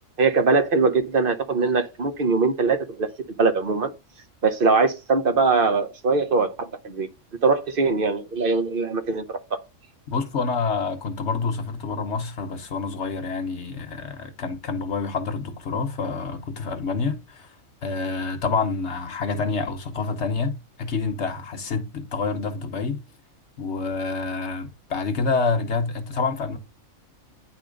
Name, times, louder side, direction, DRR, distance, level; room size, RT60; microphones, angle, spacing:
voice 1, 0.2-3.1 3.4-3.9 4.4-7.1 7.4-9.6, right 4 dB, 45° right, 0.9 m, -22 dB
voice 2, 10.1-17.6 17.8-23.0 23.6-26.6, left 4 dB, 55° left, 1.2 m, -27 dB
9.7 x 3.5 x 5.1 m
omnidirectional pair, 1.5 m